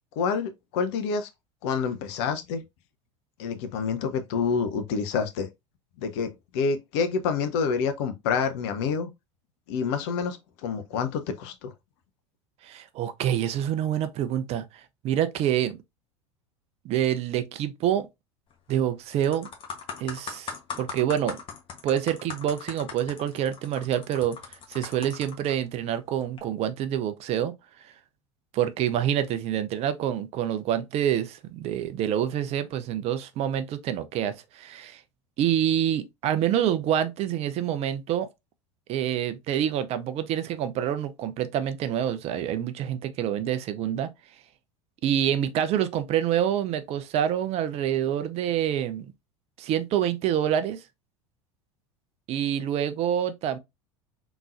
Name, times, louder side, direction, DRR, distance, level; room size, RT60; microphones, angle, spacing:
voice 1, 0.2-1.3 1.6-2.6 3.4-5.5 6.0-9.1 9.7-10.4 10.6-11.7, left 5 dB, 60° left, 0.7 m, -27 dB
voice 2, 12.6-14.6 15.0-15.8 16.8-18.1 18.7-19.5 20.0-21.4 21.8-24.4 24.7-27.5 28.5-35.0 35.4-38.3 38.9-44.1 45.0-49.1 49.6-50.8 52.3-53.6, right 10 dB, 40° right, 0.6 m, -27 dB
sound 1, 18.5-18.8 19.1-25.5 26.2-26.4, left 6 dB, 35° left, 1.1 m, -39 dB
3.6 x 3.0 x 2.5 m
hypercardioid pair, 80°, 16 cm